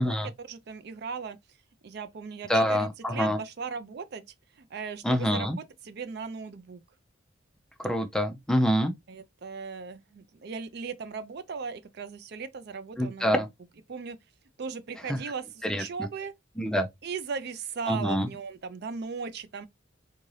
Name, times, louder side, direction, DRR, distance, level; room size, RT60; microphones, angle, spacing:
voice 1, 0.0-1.4 1.8-4.2 4.6-5.5 5.8-6.8 9.1-13.4 13.9-14.2 14.6-16.3 17.0-19.7, right 5 dB, 55° right, 0.4 m, -37 dB
voice 2, 2.5-3.4 5.0-5.6 7.8-8.9 13.0-13.5 15.1-15.2 15.6-15.8 16.6-16.9 17.9-18.3, equal, 5° left, 0.5 m, -26 dB
3.7 x 2.7 x 3.1 m
head